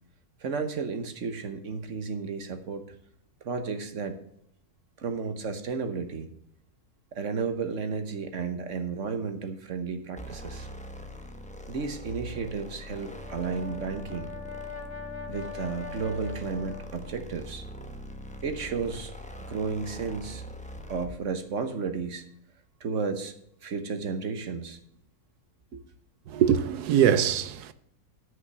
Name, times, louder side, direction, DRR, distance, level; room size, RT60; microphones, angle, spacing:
voice 1, 0.4-2.8 3.4-4.2 5.0-6.3 7.1-10.7 11.7-14.3 15.3-17.6 18.4-19.1 19.5-20.4 20.9-22.2 22.8-23.3 23.6-24.8 25.7-25.8, right 5 dB, 55° right, 1.3 m, -33 dB
sound 1, 10.2-21.2, equal, 5° left, 0.7 m, -42 dB
Brass instrument, 13.0-17.3, left 6 dB, 45° left, 0.9 m, -42 dB
voice 2, 26.3-27.7, right 9 dB, 80° right, 1.2 m, -23 dB
9.8 x 5.6 x 7.2 m
omnidirectional pair, 1.7 m